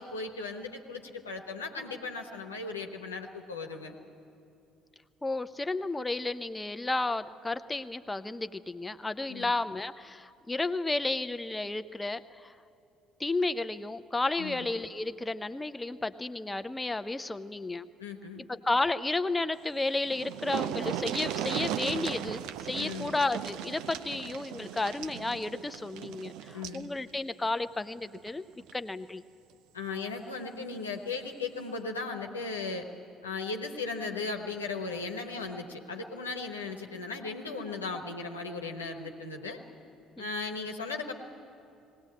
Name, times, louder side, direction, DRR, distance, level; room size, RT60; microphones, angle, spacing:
voice 1, 0.0-3.9 9.3-9.5 14.4-14.7 18.0-18.4 22.8-23.1 26.5-26.9 29.7-32.9 33.2-39.6 40.2-41.1, left 4 dB, 85° left, 2 dB, 1.1 m, -37 dB
voice 2, 5.2-12.5 13.2-17.9 18.5-28.4 28.7-29.2 40.2-40.3, left 2 dB, 15° left, 11 dB, 0.7 m, -32 dB
sound 1, 19.7-19.8 20.0-26.9 28.2-28.3 28.7-28.8, right 10 dB, 65° right, 0.6 m, -37 dB
19.5 x 17.5 x 8.5 m, 2.7 s
figure-of-eight pair, 50°, 0 cm